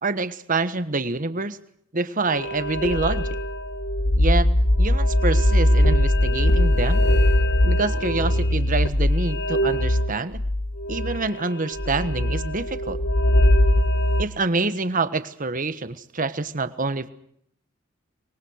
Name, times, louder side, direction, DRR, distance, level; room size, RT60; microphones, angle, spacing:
voice 1, 0.0-1.6 1.9-3.3 4.1-4.5 4.8-7.0 7.6-10.4 10.9-13.0 14.2-17.1, right 3 dB, 40° right, 13 dB, 1.3 m, -26 dB
sound 1, 2.3-14.2, left 1 dB, 55° left, 1.3 m, -21 dB
24.5 x 22.0 x 6.5 m, 0.69 s
head